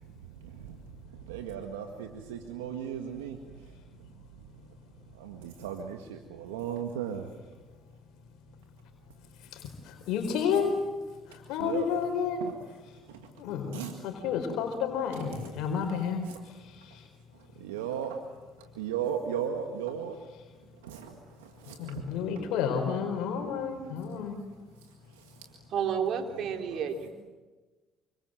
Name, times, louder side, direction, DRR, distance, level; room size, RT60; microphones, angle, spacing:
voice 1, 0.0-4.8 5.1-7.3 11.6-11.9 12.4-12.5 13.1-13.3 13.7-14.0 16.2-16.4 17.3-20.2 20.8-22.1 23.5-23.6 24.8-25.5 26.3-26.9, right 8 dB, 90° right, 4 dB, 2.0 m, -38 dB
voice 2, 9.5-10.8 11.3-12.4 13.4-17.1 21.8-24.4, left 7 dB, 75° left, 4 dB, 4.5 m, -31 dB
voice 3, 25.7-27.1, right 7 dB, 65° right, 5 dB, 3.9 m, -30 dB
28.0 x 25.5 x 7.9 m, 1.3 s
hypercardioid pair, 60°, 0 cm